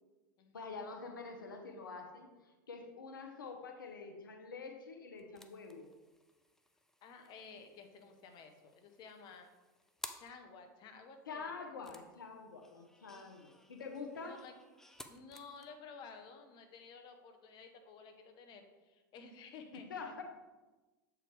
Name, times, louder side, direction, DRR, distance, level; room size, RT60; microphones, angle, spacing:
voice 1, 0.5-2.3 2.7-5.9 11.3-14.4 19.7-20.2, left 4 dB, 85° left, 4 dB, 0.9 m, -46 dB
sound 1, 5.1-10.6 11.8-15.7, left 1 dB, 5° left, 0.6 m, -56 dB
voice 2, 7.0-9.5 10.1-11.6 14.2-14.5 15.1-20.2, left 5 dB, 45° left, 6 dB, 1.1 m, -54 dB
7.6 x 4.8 x 3.5 m, 1.2 s
hypercardioid pair, 95°, 11 cm